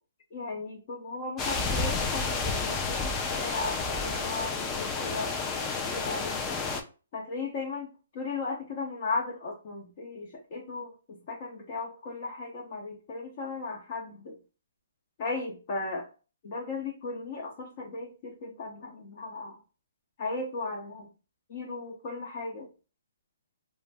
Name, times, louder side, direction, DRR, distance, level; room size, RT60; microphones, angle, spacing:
voice 1, 0.3-6.4 7.1-7.9 8.1-14.4 15.2-16.1 16.4-19.6 20.2-21.1 21.5-22.7, left 3 dB, 40° left, 0 dB, 0.7 m, -36 dB
sound 1, 1.4-6.8, left 4 dB, 15° left, 0.4 m, -30 dB
2.4 x 2.1 x 3.3 m, 0.34 s
hypercardioid pair, 150°, 0 cm